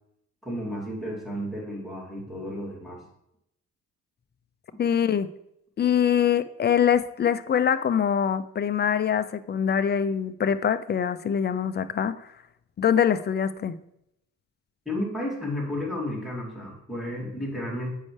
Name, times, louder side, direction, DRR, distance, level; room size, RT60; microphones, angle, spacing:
voice 1, 0.4-3.1 14.8-17.9, left 1 dB, ahead, -4 dB, 2.6 m, -32 dB
voice 2, 4.8-5.3 5.8-12.3 12.8-13.8, left 8 dB, 35° left, 13 dB, 0.5 m, -24 dB
8.3 x 5.4 x 3.2 m, 0.80 s
cardioid pair, 90°, 30 cm